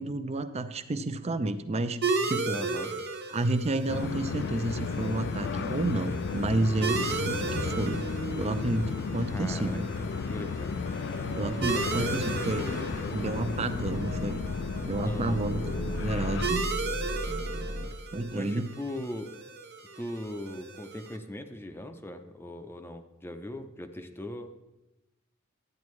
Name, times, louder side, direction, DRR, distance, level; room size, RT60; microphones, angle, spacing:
voice 1, 0.0-2.6 3.3-8.0 8.4-9.8 11.4-12.6 13.1-14.4 14.8-15.7 16.0-16.7 18.1-18.7, right 2 dB, 30° right, 11 dB, 0.5 m, -30 dB
sound 1, 2.0-21.2, right 4 dB, 55° right, 0.9 m, -36 dB
voice 2, 2.5-2.9 9.3-10.8 11.7-12.3 12.6-13.2 15.0-15.4 18.3-19.4 20.0-24.5, left 1 dB, 10° left, 7 dB, 0.6 m, -39 dB
sound 2, 3.9-16.5, left 5 dB, 60° left, 0.4 m, -34 dB
sound 3, 6.2-17.9, right 1 dB, 85° right, 1.0 m, -39 dB
12.5 x 9.3 x 3.2 m, 0.96 s
head